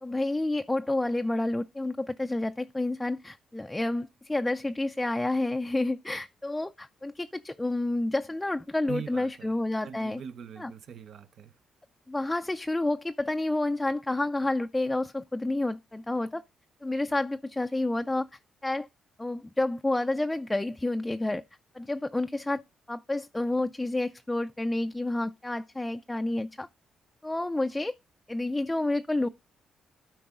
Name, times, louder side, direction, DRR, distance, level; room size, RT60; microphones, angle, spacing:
voice 1, 0.0-10.2 10.6-10.7 12.1-16.4 16.8-18.3 18.6-18.9 19.2-21.4 21.7-22.6 22.9-26.7 27.2-27.9 28.3-29.3, left 2 dB, 10° left, 0.4 m, -29 dB
voice 2, 8.9-11.5, right 7 dB, 65° right, 0.8 m, -42 dB
12.5 x 4.6 x 3.7 m
cardioid pair, 95°, 0 cm